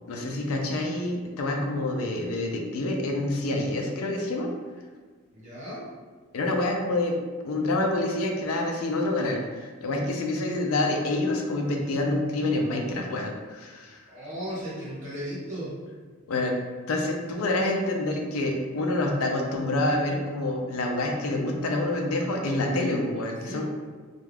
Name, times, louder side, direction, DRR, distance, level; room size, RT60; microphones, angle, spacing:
voice 1, 0.1-4.5 6.3-7.2 7.4-14.0 16.3-16.5 16.9-23.6, left 2 dB, 80° left, 2 dB, 0.4 m, -27 dB
voice 2, 5.3-5.8 14.1-15.7 23.4-23.6, equal, 35° right, -8 dB, 1.0 m, -36 dB
2.3 x 2.2 x 3.2 m, 1.5 s
head